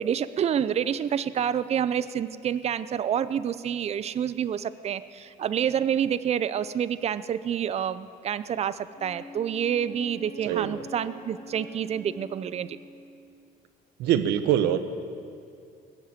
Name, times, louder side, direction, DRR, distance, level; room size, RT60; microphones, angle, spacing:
voice 1, 0.0-12.8, right 9 dB, 40° right, 16 dB, 0.5 m, -28 dB
Wind instrument woodwind instrument, 8.9-13.3, left 2 dB, 35° left, 2.1 m, -45 dB
voice 2, 10.5-10.8 14.0-14.8, right 11 dB, 85° right, 11 dB, 0.9 m, -24 dB
20.0 x 7.4 x 9.0 m, 2.4 s
cardioid pair, 110°, 17 cm